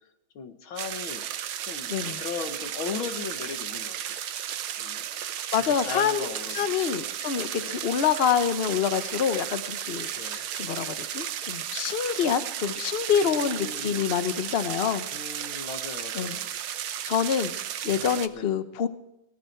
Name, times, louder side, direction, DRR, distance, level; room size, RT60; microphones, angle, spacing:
voice 1, 0.4-1.2 1.7-4.2 4.8-5.0 5.5-6.9 7.6-7.9 10.1-10.5 13.2-14.0 15.1-16.5 17.9-18.5, left 5 dB, 85° left, 7 dB, 2.2 m, -38 dB
sound 1, 0.8-18.3, right 10 dB, 90° right, 1.7 m, -34 dB
voice 2, 1.9-2.2 5.5-6.3 6.5-15.0 16.1-16.4 17.1-17.5 17.8-18.9, left 8 dB, 50° left, 11 dB, 0.7 m, -26 dB
18.0 x 12.5 x 4.5 m, 0.89 s
omnidirectional pair, 2.2 m